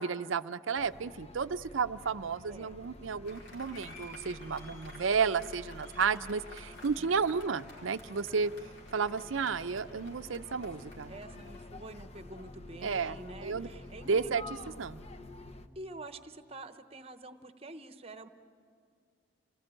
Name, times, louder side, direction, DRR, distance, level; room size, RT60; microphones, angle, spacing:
voice 1, 0.0-8.5 8.9-11.1 12.8-13.2 13.4-13.7 14.1-14.4 14.8-15.0, right 5 dB, 80° right, 13 dB, 0.6 m, -32 dB
sound 1, 0.8-15.7, left 2 dB, 30° left, 0.8 m, -49 dB
Applause, 3.2-11.6, left 1 dB, 70° left, 4.6 m, -53 dB
voice 2, 7.0-7.4 11.1-14.4 15.7-18.3, right 2 dB, 30° right, 9 dB, 1.0 m, -47 dB
sound 2, 10.6-16.1, equal, 5° left, 2.7 m, -60 dB
28.5 x 19.0 x 8.9 m, 2.2 s
head